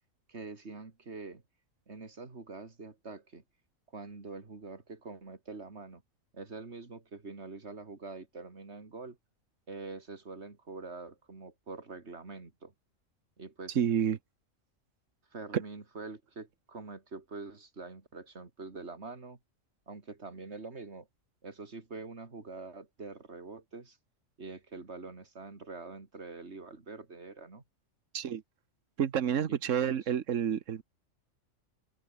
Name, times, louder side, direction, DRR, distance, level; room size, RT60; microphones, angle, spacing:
voice 1, 0.3-1.4 1.9-3.4 3.9-6.0 6.3-9.2 9.7-12.7 13.4-13.8 15.3-19.4 19.9-21.1 21.4-24.0 24.4-27.6 29.5-30.1, right 3 dB, 55° right, 3.2 m, -45 dB
voice 2, 13.8-14.2 28.1-28.4 29.0-30.8, right 8 dB, 70° right, 1.4 m, -29 dB
omnidirectional pair, 1.4 m